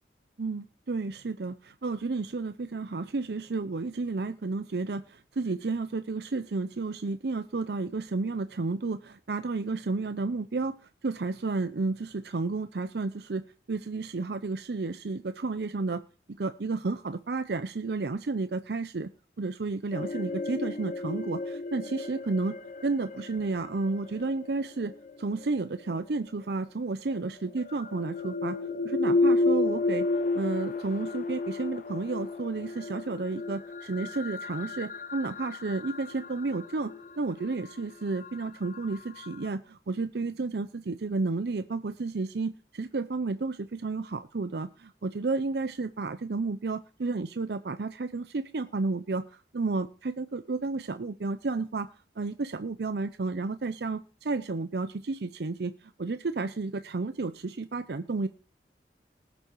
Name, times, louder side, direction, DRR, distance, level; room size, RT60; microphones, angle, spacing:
voice 1, 0.4-10.7 11.0-13.4 13.7-16.0 16.4-19.1 19.4-22.6 22.8-24.9 25.2-28.6 28.8-30.1 30.3-51.9 52.2-58.3, right 3 dB, 65° right, 11 dB, 0.6 m, -32 dB
sound 1, 19.9-25.9 27.1-39.5, left 3 dB, 45° left, 0.6 m, -32 dB
19.0 x 6.8 x 4.6 m, 0.34 s
head